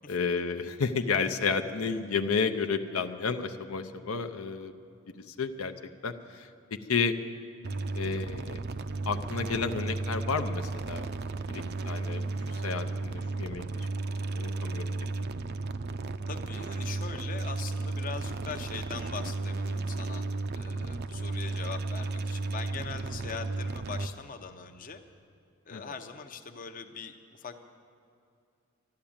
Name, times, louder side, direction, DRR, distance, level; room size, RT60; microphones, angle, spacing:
voice 1, 0.1-4.7 5.3-5.7 6.0-7.1 7.9-8.6 9.1-11.1 11.5-13.6 14.3-15.3 25.7-25.8, left 5 dB, 75° left, 7 dB, 0.6 m, -31 dB
sound 1, 7.6-24.1, right 3 dB, 50° right, 0.5 m, -34 dB
voice 2, 16.3-20.3 20.5-25.0 25.7-27.6, left 5 dB, 40° left, 6 dB, 0.7 m, -41 dB
12.5 x 11.5 x 8.7 m, 2.4 s
head